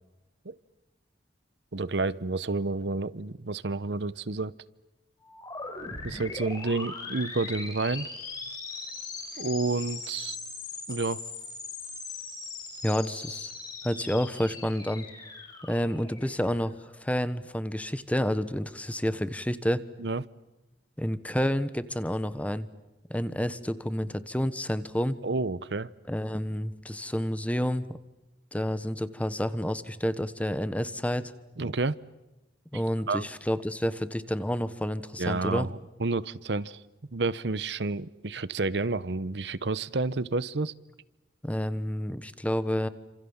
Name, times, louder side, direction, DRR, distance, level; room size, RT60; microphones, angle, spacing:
voice 1, 1.7-4.5 6.0-8.1 9.4-10.4 10.9-11.2 20.0-20.2 25.2-25.9 31.6-31.9 32.7-32.8 33.1-33.3 35.2-36.8 37.1-40.7, right 3 dB, 70° right, 18 dB, 0.9 m, -30 dB
sound 1, 5.2-16.9, left 4 dB, 25° left, 6.0 m, -40 dB
voice 2, 12.8-13.5 13.8-15.1 15.6-16.7 17.0-19.8 21.0-22.7 23.1-25.2 26.1-27.9 28.5-31.3 32.7-35.7 41.4-42.9, equal, 10° left, 14 dB, 1.2 m, -29 dB
29.5 x 27.0 x 7.2 m, 1.0 s
head